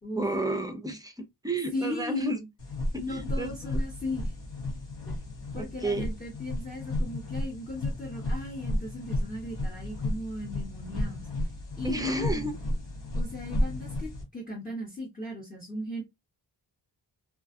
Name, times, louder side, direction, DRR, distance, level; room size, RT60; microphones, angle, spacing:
voice 1, 0.2-2.4 2.9-3.8 5.6-6.1 11.8-12.6, right 1 dB, 10° right, 0.4 m, -31 dB
voice 2, 1.7-2.5 3.0-4.3 5.1-5.2 5.5-11.3 11.8-12.6 13.1-16.0, left 1 dB, 20° left, 0.9 m, -37 dB
sound 1, 2.6-14.2, left 1 dB, 70° left, 1.1 m, -33 dB
2.4 x 2.2 x 2.5 m
wide cardioid pair, 110°, 44 cm